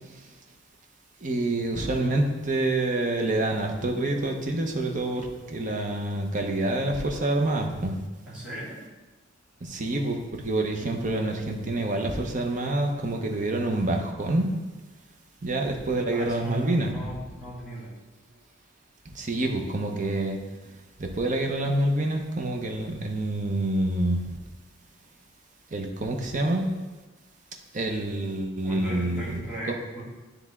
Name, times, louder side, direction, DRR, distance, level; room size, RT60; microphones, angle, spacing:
voice 1, 1.2-8.0 9.6-14.5 15.4-16.9 19.1-20.4 21.0-24.3 25.7-26.7 27.7-29.4 29.7-29.8, right 2 dB, 40° right, 3 dB, 0.7 m, -27 dB
voice 2, 8.3-8.8 16.1-17.9 28.6-30.0, right 1 dB, 5° right, -9 dB, 1.9 m, -37 dB
9.6 x 3.4 x 3.5 m, 1.2 s
head